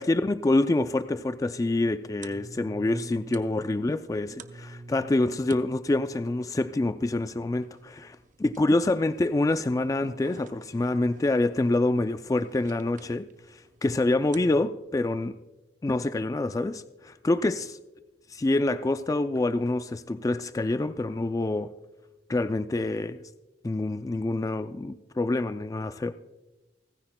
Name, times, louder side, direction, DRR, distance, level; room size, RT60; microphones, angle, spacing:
voice 1, 0.0-15.4 15.8-17.8 18.3-21.7 22.3-23.2 23.6-26.2, left 2 dB, 20° left, 10 dB, 0.3 m, -26 dB
sound 1, 1.0-14.7, right 2 dB, 45° right, 0.6 m, -50 dB
29.5 x 10.0 x 2.2 m, 1.1 s
head